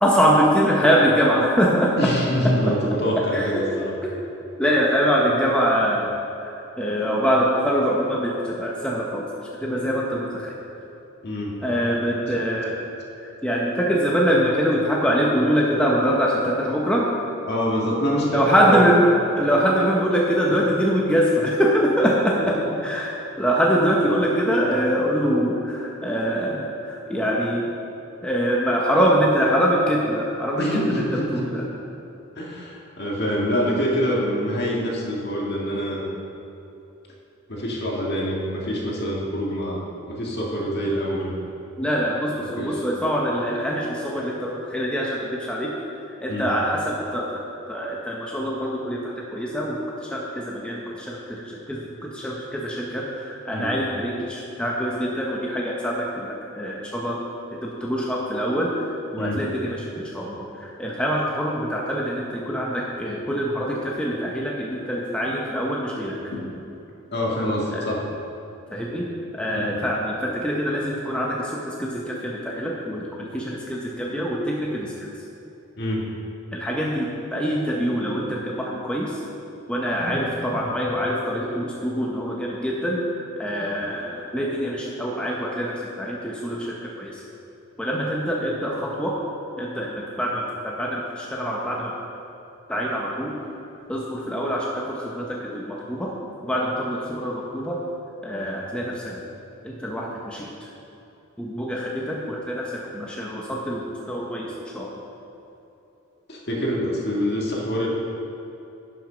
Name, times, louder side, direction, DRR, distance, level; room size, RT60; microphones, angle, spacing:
voice 1, 0.0-2.1 2.4-2.6 3.3-3.5 4.0-4.1 4.6-6.1 6.4-9.3 9.6-10.5 11.6-12.8 13.2-17.1 18.3-27.7 28.2-31.6 41.8-45.7 46.2-47.4 47.7-57.2 57.5-58.9 59.1-66.2 67.7-67.8 68.7-74.9 76.5-79.2 79.7-87.2 87.8-89.2 89.6-91.9 92.7-93.4 93.9-96.1 96.4-97.8 98.2-99.2 99.6-100.5 101.4-104.9, equal, 5° left, -3 dB, 0.8 m, -24 dB
voice 2, 2.0-3.9 11.2-11.6 16.4-16.5 17.5-18.8 22.4-22.7 30.6-31.7 32.4-36.1 37.5-41.3 42.4-42.8 46.3-46.5 53.5-53.7 59.2-59.4 66.3-66.5 67.1-68.0 69.5-69.7 75.8-76.1 106.3-107.9, equal, 50° left, -3 dB, 1.8 m, -25 dB
11.0 x 6.3 x 5.1 m, 2.9 s
head